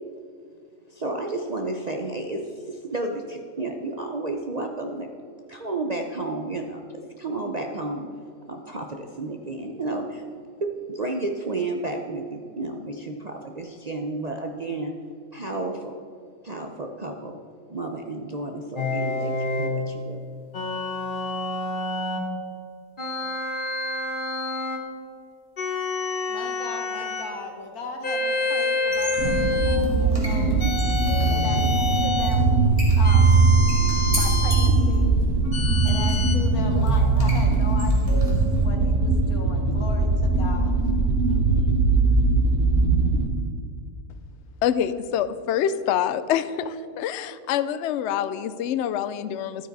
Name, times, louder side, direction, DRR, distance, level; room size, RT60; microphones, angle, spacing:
voice 1, 0.9-5.1 5.5-8.1 8.5-10.2 10.6-14.9 15.3-15.9 16.4-17.4 17.7-20.2, right 2 dB, 45° right, 3 dB, 0.5 m, -31 dB
sound 1, 18.8-19.8 20.5-22.3 23.0-24.9 25.6-27.3 28.0-29.9 30.6-32.4 33.0-34.8 35.5-36.4, left 2 dB, 40° left, 1.1 m, -28 dB
voice 2, 26.3-30.6 31.2-32.5 33.0-33.5 34.1-35.1 35.8-40.8 41.0-41.7, left 3 dB, 90° left, 3 dB, 1.8 m, -38 dB
sound 2, 28.8-38.6, right 1 dB, 25° right, 1.9 m, -37 dB
sound 3, 29.2-43.3, right 3 dB, 80° right, 1.4 m, -20 dB
voice 3, 44.6-49.7, left 9 dB, 65° left, 13 dB, 0.7 m, -26 dB
12.5 x 9.0 x 4.0 m, 2.3 s
omnidirectional pair, 1.5 m